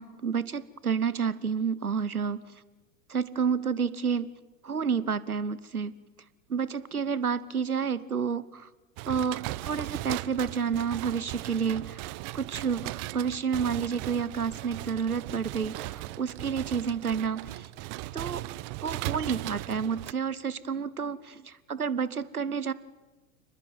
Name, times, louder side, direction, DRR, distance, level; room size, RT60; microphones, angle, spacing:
voice 1, 0.0-2.4 3.1-4.3 4.6-5.9 6.5-8.7 9.1-12.1 12.3-17.7 18.1-18.4 18.8-22.7, right 6 dB, 85° right, 18 dB, 1.1 m, -30 dB
sound 1, 9.0-20.1, right 19 dB, 40° right, 0.9 m, -38 dB
29.5 x 20.0 x 9.4 m, 1.2 s
figure-of-eight pair, 90°, 43 cm